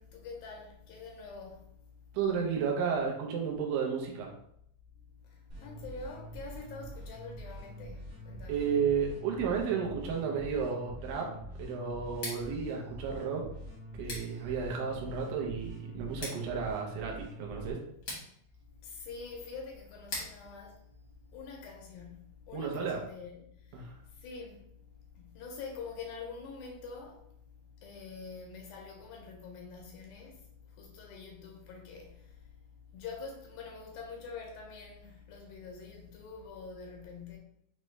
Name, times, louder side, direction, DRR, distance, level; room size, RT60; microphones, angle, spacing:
voice 1, 0.0-1.7 5.3-8.6 18.8-20.8 21.3-23.4 23.7-23.9 24.2-24.7 25.2-27.2 27.8-30.4 30.7-32.4 32.9-37.4, left 4 dB, 80° left, 2.2 m, -45 dB
voice 2, 2.1-4.3 8.5-11.3 11.6-13.4 14.0-17.8 22.5-23.0 23.7-24.0, right 6 dB, 75° right, 2.0 m, -32 dB
sound 1, 5.5-17.7, equal, 45° right, 1.0 m, -45 dB
Scissors, 12.1-21.9, left 2 dB, 60° left, 1.2 m, -47 dB
6.2 x 2.2 x 3.1 m
omnidirectional pair, 4.5 m